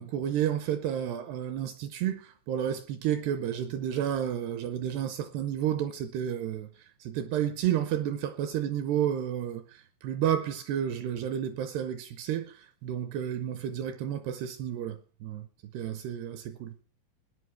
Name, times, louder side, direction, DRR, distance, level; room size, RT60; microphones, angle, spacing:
voice 1, 0.0-6.7 7.0-15.5 15.7-16.7, right 10 dB, 80° right, 2.5 m, -31 dB
18.5 x 10.0 x 4.7 m
omnidirectional pair, 5.5 m